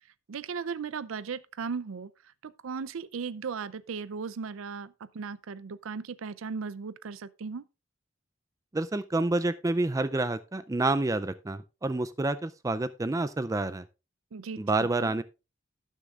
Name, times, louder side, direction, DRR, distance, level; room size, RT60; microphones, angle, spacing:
voice 1, 0.3-2.1 2.4-7.6 14.3-15.1, right 5 dB, 90° right, 0.5 m, -37 dB
voice 2, 8.7-13.8 14.6-15.2, right 2 dB, 15° right, 0.4 m, -28 dB
18.0 x 6.5 x 2.4 m
head